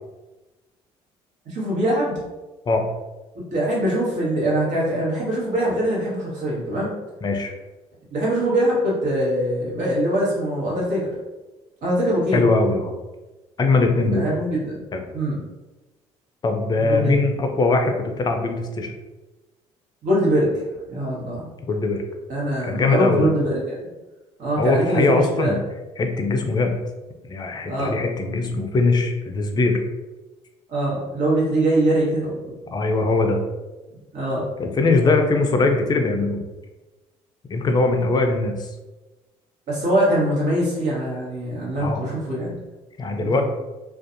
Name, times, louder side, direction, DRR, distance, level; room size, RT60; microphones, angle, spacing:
voice 1, 1.4-2.2 3.5-6.9 8.1-11.1 11.8-12.4 14.0-14.8 15.1-15.4 16.8-17.2 20.0-20.5 20.9-21.5 22.3-23.8 24.4-25.5 27.7-28.0 30.7-32.7 34.1-34.5 39.7-42.6 43.2-43.4, right 1 dB, 65° right, -5 dB, 1.3 m, -23 dB
voice 2, 7.2-7.5 12.3-12.9 13.6-14.3 14.9-15.0 16.4-18.9 21.7-22.0 22.7-23.3 24.6-25.6 26.0-26.7 27.3-29.8 32.7-33.4 34.6-36.4 37.5-38.7 41.8-42.0 43.0-43.4, left 3 dB, 30° left, 4 dB, 0.5 m, -21 dB
2.5 x 2.3 x 2.5 m, 1.1 s
supercardioid pair, 75°, 14 cm